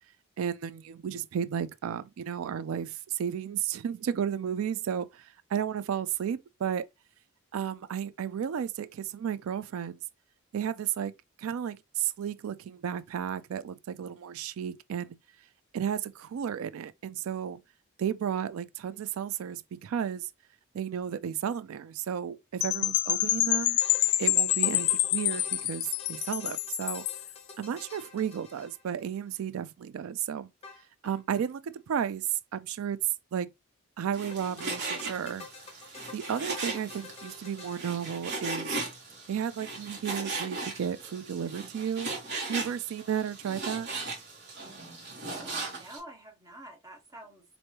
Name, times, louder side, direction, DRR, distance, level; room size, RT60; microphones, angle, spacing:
voice 1, 0.4-6.9 7.5-10.0 10.5-11.1 11.4-15.2 15.7-17.6 18.0-20.3 20.7-23.8 24.2-27.1 27.6-30.5 31.0-33.0 33.3-33.5 34.0-35.5 36.1-38.8 39.3-42.1 42.5-43.9, right 8 dB, 70° right, 0.3 m, -33 dB
Percussion / Wind chime, 22.6-27.3, left 15 dB, 75° left, 0.4 m, -27 dB
sound 1, 23.5-29.3 30.6-31.5 31.7-31.8 32.0-32.1 34.3-38.8, left 4 dB, 25° left, 0.8 m, -48 dB
Frying (food), 34.1-46.0, right 3 dB, 50° right, 1.4 m, -38 dB
voice 2, 45.3-47.4, right 1 dB, 15° right, 1.2 m, -48 dB
4.6 x 2.6 x 2.9 m
head